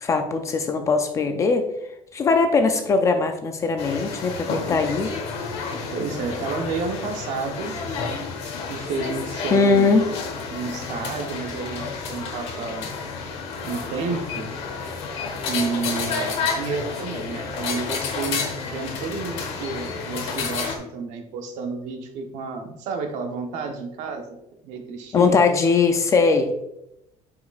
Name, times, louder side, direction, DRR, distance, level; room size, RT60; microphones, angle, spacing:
voice 1, 0.0-1.7 2.1-5.1 9.5-10.0 25.1-26.5, left 4 dB, 20° left, 6 dB, 0.4 m, -20 dB
sound 1, 3.8-20.8, left 5 dB, 45° left, 1.1 m, -30 dB
voice 2, 5.9-7.7 8.7-9.9 10.5-12.9 13.7-14.5 15.5-24.4 24.6-25.4, right 4 dB, 55° right, 4 dB, 0.9 m, -31 dB
8.2 x 5.0 x 2.4 m, 0.85 s
cardioid pair, 180°, 14 cm